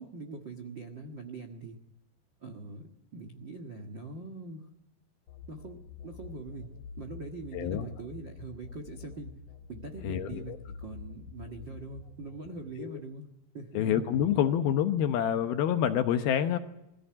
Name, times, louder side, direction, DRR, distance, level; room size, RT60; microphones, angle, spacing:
voice 1, 0.0-1.8 2.4-4.6 5.5-6.7 7.0-9.3 9.7-13.3 13.5-13.9, right 3 dB, 85° right, 5 dB, 1.0 m, -43 dB
sound 1, 5.3-12.9, left 6 dB, 40° left, 3.6 m, -47 dB
voice 2, 7.5-7.9 10.0-10.6 12.8-13.0 13.7-16.6, left 9 dB, 70° left, 8 dB, 2.5 m, -27 dB
22.0 x 15.5 x 9.9 m, 0.91 s
omnidirectional pair, 5.2 m